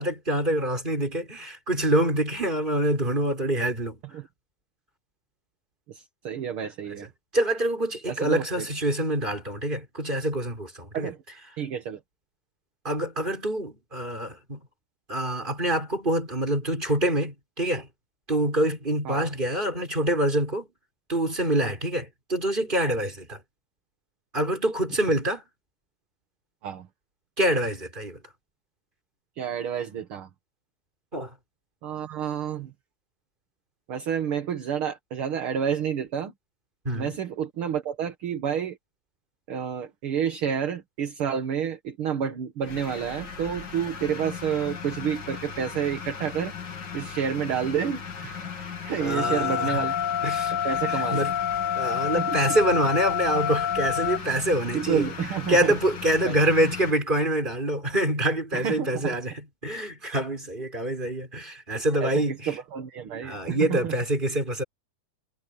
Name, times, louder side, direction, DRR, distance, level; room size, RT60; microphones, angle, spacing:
voice 1, 0.0-4.0 7.3-11.1 12.8-14.6 15.1-17.9 18.3-20.7 21.1-23.4 24.3-25.4 27.4-28.2 31.1-31.3 36.8-37.2 49.0-49.8 50.2-50.5 50.9-51.3 51.7-55.1 55.5-62.5 63.2-64.6, right 1 dB, 15° right, 6.5 m, -26 dB
voice 2, 5.9-7.1 8.1-8.7 10.9-11.2 11.6-12.0 19.1-19.2 26.6-26.9 29.4-30.3 31.8-32.7 33.9-36.3 36.9-38.8 39.5-46.5 46.9-50.0 50.6-51.3 52.2-52.5 54.7-55.7 56.2-56.4 58.5-59.2 62.0-63.9, right 8 dB, 50° right, 2.1 m, -29 dB
sound 1, 42.6-56.9, left 6 dB, 40° left, 2.4 m, -38 dB
sound 2, 49.2-54.2, left 9 dB, 65° left, 1.4 m, -27 dB
omnidirectional pair, 3.6 m